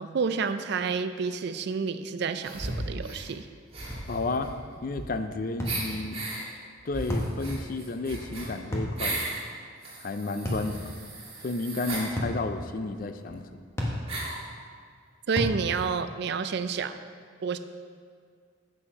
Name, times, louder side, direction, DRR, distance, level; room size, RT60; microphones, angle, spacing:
voice 1, 0.0-3.5 15.3-16.9 17.4-17.6, right 5 dB, 55° right, 11 dB, 0.4 m, -29 dB
sound 1, 2.4-3.3 3.7-5.3 5.6-6.4 6.9-9.4 9.8-12.1 13.0-13.1 13.3-13.4 14.1-14.5, right 2 dB, 30° right, 2.2 m, -36 dB
sound 2, 3.9-4.1 5.6-5.8 7.1-7.4 8.7-9.0 10.5-10.7 12.2-12.4 13.8-14.0 15.4-15.6, left 1 dB, 15° left, 1.1 m, -30 dB
voice 2, 4.1-4.5 4.8-6.3 6.9-9.2 10.0-11.0 11.4-13.6, left 3 dB, 40° left, 9 dB, 0.4 m, -32 dB
7.9 x 6.1 x 5.5 m, 2.1 s
head